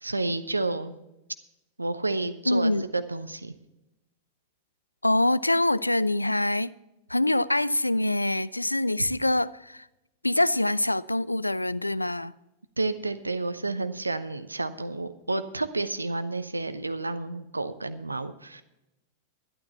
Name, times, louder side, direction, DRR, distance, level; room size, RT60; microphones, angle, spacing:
voice 1, 0.0-0.9 1.8-3.5 12.8-18.6, right 2 dB, 80° right, 0.7 m, -30 dB
voice 2, 2.5-2.8 5.0-6.7 7.1-9.9 10.2-12.3, left 1 dB, 85° left, 0.3 m, -25 dB
12.0 x 11.0 x 4.3 m
figure-of-eight pair, 90°, 0 cm